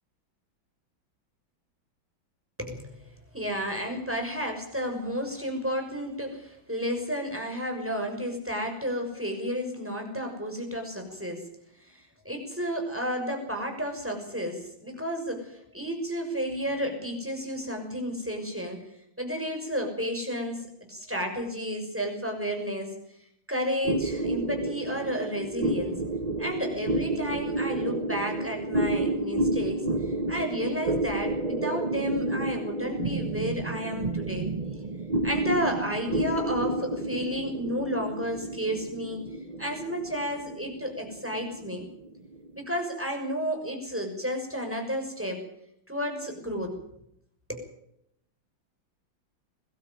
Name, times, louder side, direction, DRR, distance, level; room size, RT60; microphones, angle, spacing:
voice 1, 2.6-11.5 11.8-18.9 19.2-22.9 23.5-26.0 26.4-34.5 34.8-34.9 35.2-39.2 39.6-41.9 42.5-45.4 45.9-46.7 47.5-47.7, equal, 5° right, 2 dB, 6.2 m, -32 dB
sound 1, 23.8-42.6, right 2 dB, 30° right, 0.9 m, -30 dB
23.0 x 12.5 x 9.8 m, 0.74 s
omnidirectional pair, 2.2 m